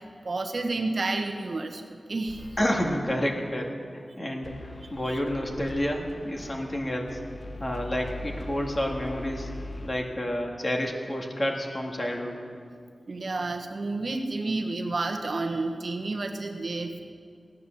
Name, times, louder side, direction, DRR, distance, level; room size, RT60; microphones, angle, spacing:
voice 1, 0.2-2.5 4.8-5.2 13.1-17.0, right 3 dB, 60° right, 4 dB, 1.3 m, -30 dB
sound 1, 2.3-3.0 4.4-9.9, left 1 dB, 50° left, 1.2 m, -41 dB
voice 2, 2.6-7.2 7.6-9.5 9.8-12.4, equal, 35° left, 1 dB, 2.1 m, -29 dB
17.0 x 9.2 x 7.2 m, 2.2 s
wide cardioid pair, 80°, 0 cm